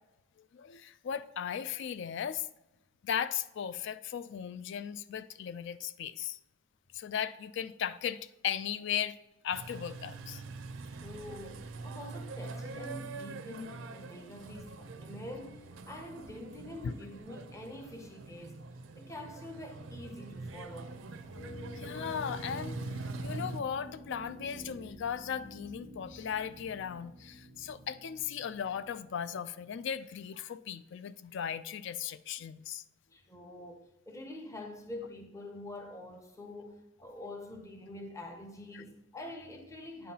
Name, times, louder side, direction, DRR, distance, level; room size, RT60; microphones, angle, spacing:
voice 1, 0.4-2.5 3.0-6.4 6.9-9.2 9.4-10.4 16.8-16.9 21.8-32.8 38.7-38.8, left 8 dB, 60° left, 0.3 m, -37 dB
sound 1, 9.5-23.6, right 3 dB, 65° right, 0.5 m, -44 dB
voice 2, 10.9-18.6 19.0-20.9 21.2-21.3 33.1-40.1, left 1 dB, 15° left, 0.6 m, -46 dB
sound 2, 21.3-30.0, left 1 dB, 40° left, 1.4 m, -49 dB
9.3 x 5.5 x 2.8 m
head